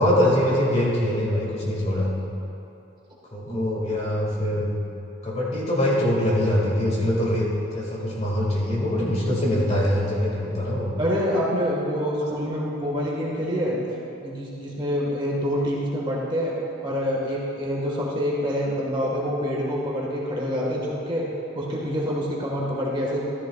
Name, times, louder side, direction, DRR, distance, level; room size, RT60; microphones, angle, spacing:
voice 1, 0.0-2.1 3.3-4.7 5.2-10.9, left 1 dB, 35° left, -4 dB, 2.1 m, -23 dB
voice 2, 3.5-3.8 9.2-9.7 11.0-13.8 14.2-16.5 16.8-21.3 21.5-23.2, equal, 25° right, -4 dB, 1.6 m, -26 dB
14.0 x 13.5 x 2.4 m, 2.8 s
head